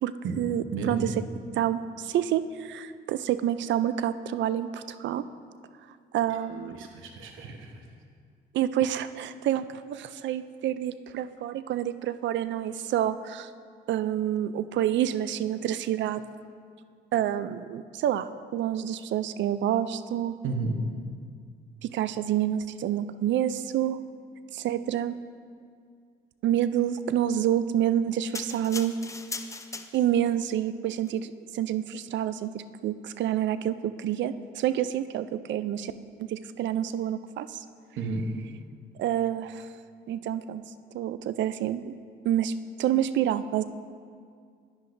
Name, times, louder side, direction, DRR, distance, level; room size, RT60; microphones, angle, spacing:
voice 1, 0.0-1.0 1.6-5.2 6.1-6.8 8.5-13.5 13.9-16.2 17.1-20.4 21.8-24.0 24.5-25.2 26.4-29.0 29.9-35.9 36.2-37.6 39.0-39.7 40.1-40.6 40.9-41.9 42.2-42.5 42.8-43.6, right 11 dB, 65° right, 13 dB, 0.4 m, -28 dB
voice 2, 0.7-1.1 6.7-7.8 20.4-20.8 38.0-38.2, right 4 dB, 85° right, 3 dB, 1.0 m, -32 dB
sound 1, 28.3-30.3 31.0-31.1, left 3 dB, 15° left, 0.5 m, -39 dB
10.5 x 10.0 x 2.6 m, 2.1 s
cardioid pair, 90°, 20 cm